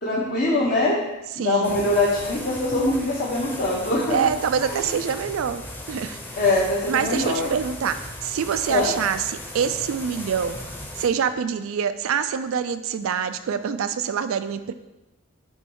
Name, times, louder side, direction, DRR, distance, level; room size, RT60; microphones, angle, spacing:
voice 1, 0.0-1.0 1.4-4.2 4.6-4.8 6.4-7.5 8.7-8.9, left 2 dB, 50° left, -6 dB, 1.0 m, -23 dB
voice 2, 1.4-1.9 4.1-6.4 6.9-10.6 11.0-14.7, right 7 dB, 75° right, 11 dB, 0.3 m, -25 dB
sound 1, 1.6-11.1, left 1 dB, 10° left, 0.8 m, -37 dB
8.7 x 3.1 x 4.7 m, 1.0 s
head